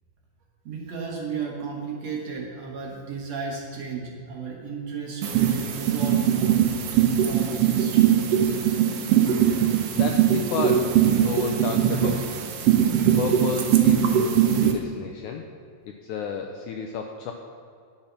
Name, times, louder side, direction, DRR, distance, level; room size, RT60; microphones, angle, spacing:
voice 1, 0.7-6.7 7.2-8.2, right 5 dB, 60° right, -1 dB, 1.9 m, -34 dB
sound 1, 5.2-14.7, right 9 dB, 80° right, 1.4 m, -21 dB
voice 2, 9.9-12.3 13.2-15.5 15.9-17.3, left 6 dB, 80° left, 3 dB, 1.8 m, -32 dB
10.5 x 7.6 x 5.7 m, 2.4 s
omnidirectional pair, 4.1 m